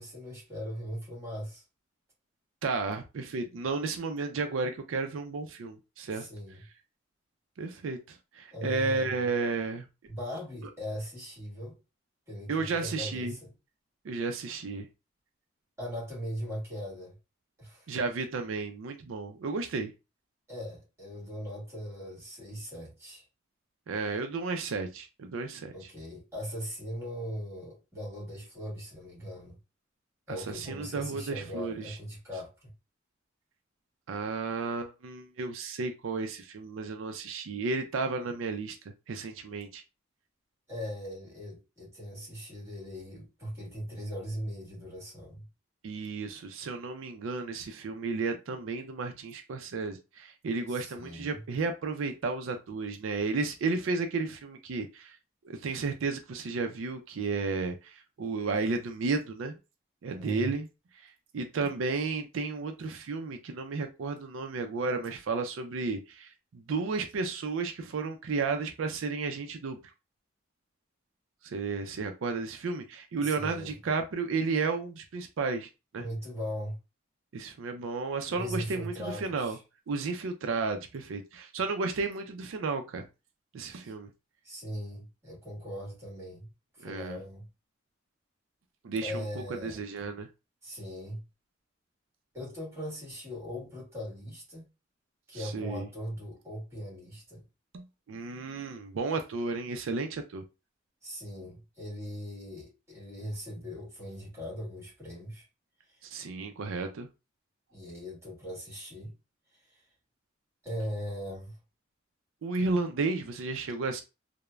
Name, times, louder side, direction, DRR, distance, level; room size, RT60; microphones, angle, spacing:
voice 1, 0.0-1.6 6.1-6.6 8.5-9.3 10.1-11.8 12.3-13.5 15.8-17.2 17.6-17.9 20.5-23.2 25.7-29.6 30.3-32.7 40.7-45.5 50.7-51.4 60.2-60.5 73.2-73.7 76.0-76.8 78.3-79.6 83.8-83.9 84.4-86.5 86.8-87.5 89.0-89.8 90.6-91.2 92.3-94.7 95.3-97.4 101.0-105.5 105.9-106.0 107.7-109.1 109.5-109.8 110.6-111.6, equal, 15° right, 1.4 m, -39 dB
voice 2, 2.6-6.3 7.6-9.9 12.5-13.3 14.0-14.9 17.9-19.9 23.9-25.7 30.3-32.0 34.1-38.8 39.1-39.8 45.8-55.2 55.4-59.5 60.0-60.7 61.0-69.8 71.4-76.1 77.3-79.6 79.9-83.0 83.5-84.1 86.8-87.2 88.8-89.2 89.6-90.3 95.3-95.9 97.7-100.4 106.0-107.1 112.4-114.0, right 4 dB, 85° right, 0.4 m, -33 dB
3.1 x 2.1 x 2.3 m
head